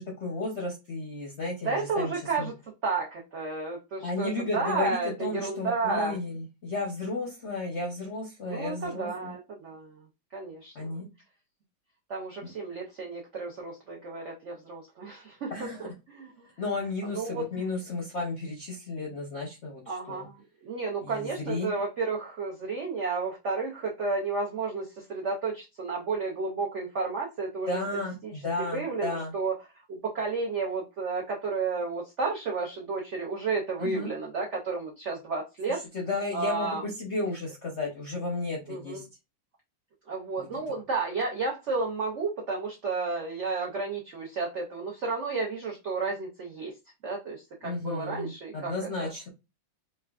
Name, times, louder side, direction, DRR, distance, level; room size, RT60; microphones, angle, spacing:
voice 1, 0.0-2.5 4.0-9.3 10.7-11.1 15.5-15.9 16.6-20.3 21.0-21.7 27.7-29.3 33.8-34.1 35.7-39.1 40.4-40.5 47.6-49.3, left 2 dB, 65° left, -1 dB, 0.6 m, -33 dB
voice 2, 1.6-2.5 2.8-6.2 8.5-9.9 10.3-11.0 12.1-15.5 15.8-16.5 17.0-17.4 19.9-27.8 28.2-28.3 28.6-29.5 29.9-35.8 36.3-36.8 38.7-39.0 40.1-46.7 47.0-48.7 49.0-49.1, right 4 dB, 85° right, -1 dB, 0.6 m, -32 dB
4.4 x 2.3 x 2.3 m, 0.26 s
omnidirectional pair, 2.1 m